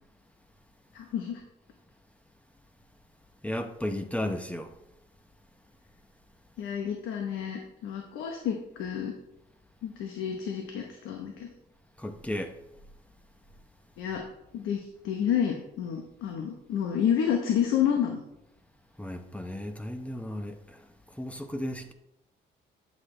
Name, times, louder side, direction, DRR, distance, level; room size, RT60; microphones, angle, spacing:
voice 1, 0.9-1.4 6.6-9.1 9.8-11.5 14.0-14.2 14.5-18.2, left 8 dB, 90° left, 1.0 m, -29 dB
voice 2, 3.4-4.7 12.0-12.5 19.0-21.9, left 1 dB, 5° left, 0.8 m, -34 dB
9.5 x 6.6 x 3.3 m
cardioid pair, 90°, 20 cm